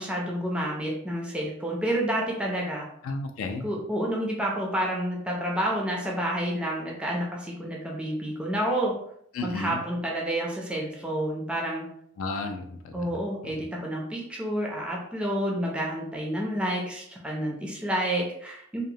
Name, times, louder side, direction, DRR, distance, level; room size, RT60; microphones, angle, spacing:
voice 1, 0.0-2.9 3.6-9.0 9.4-11.9 12.9-18.8, right 1 dB, 5° right, -2 dB, 0.4 m, -29 dB
voice 2, 3.0-3.7 9.3-9.8 12.2-13.1 13.4-13.6, left 3 dB, 70° left, 6 dB, 0.3 m, -33 dB
2.8 x 2.0 x 2.6 m, 0.70 s
head